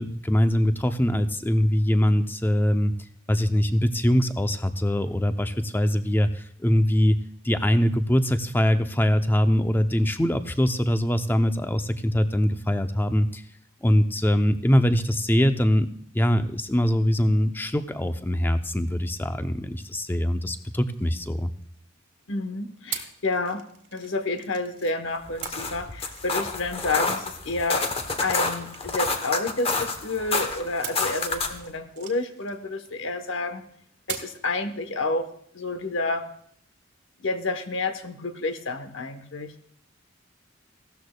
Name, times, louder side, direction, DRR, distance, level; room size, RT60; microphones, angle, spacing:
voice 1, 0.0-2.9 3.3-7.2 7.4-13.4 13.8-15.9 16.1-21.5, equal, 10° left, 9 dB, 0.5 m, -23 dB
sound 1, 20.6-22.0 22.9-25.0 25.4-30.1 30.8-33.3 34.1-34.5, right 9 dB, 60° right, 1.4 m, -42 dB
voice 2, 22.3-23.7 23.9-27.9 28.2-33.6 34.1-35.3 35.5-36.3 37.2-39.5, left 2 dB, 75° left, 8 dB, 1.0 m, -29 dB
sound 2, 25.3-31.7, left 3 dB, 30° left, 0.9 m, -29 dB
16.5 x 12.5 x 2.2 m, 0.65 s
head